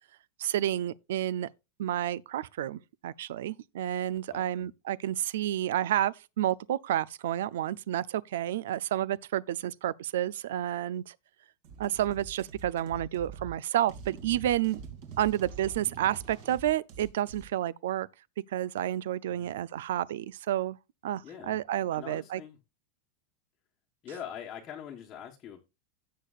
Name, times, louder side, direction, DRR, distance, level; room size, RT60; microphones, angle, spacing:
voice 1, 0.4-1.5 1.8-11.1 11.8-14.8 15.2-18.1 18.5-20.8 21.0-22.4, right 12 dB, 80° right, 0.5 m, -30 dB
voice 2, 4.3-4.7 19.3-19.6 21.2-21.6 21.9-22.6 24.0-25.6, left 9 dB, 25° left, 1.2 m, -43 dB
sound 1, 11.6-17.5, right 6 dB, 45° right, 2.6 m, -45 dB
16.5 x 6.6 x 2.4 m
supercardioid pair, 175°, 0 cm